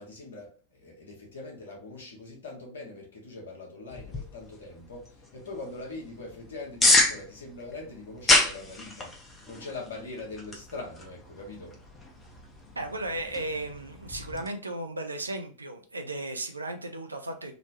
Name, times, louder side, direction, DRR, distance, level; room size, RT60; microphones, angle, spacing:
voice 1, 0.0-11.8, left 3 dB, 65° left, -1 dB, 1.1 m, -42 dB
sound 1, 3.9-14.5, left 2 dB, 20° left, 0.6 m, -30 dB
voice 2, 12.8-17.6, right 1 dB, 80° right, 5 dB, 0.4 m, -35 dB
3.0 x 2.1 x 2.8 m, 0.40 s
figure-of-eight pair, 90°, 0 cm